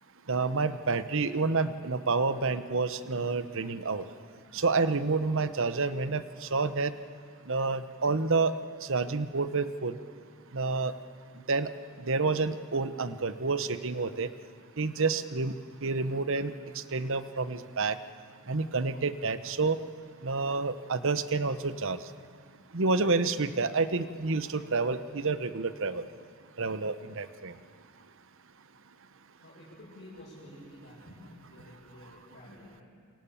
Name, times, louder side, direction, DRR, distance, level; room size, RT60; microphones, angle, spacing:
voice 1, 0.3-4.0 4.5-6.9 7.5-8.5 8.8-10.0 10.5-10.9 11.5-11.7 12.0-14.3 14.8-18.0 18.5-19.8 20.2-22.0 22.7-26.0 26.6-27.5, right 4 dB, 60° right, 12 dB, 1.0 m, -29 dB
voice 2, 29.4-32.8, left 1 dB, 50° left, -8 dB, 7.7 m, -50 dB
28.0 x 24.0 x 7.2 m, 2.2 s
head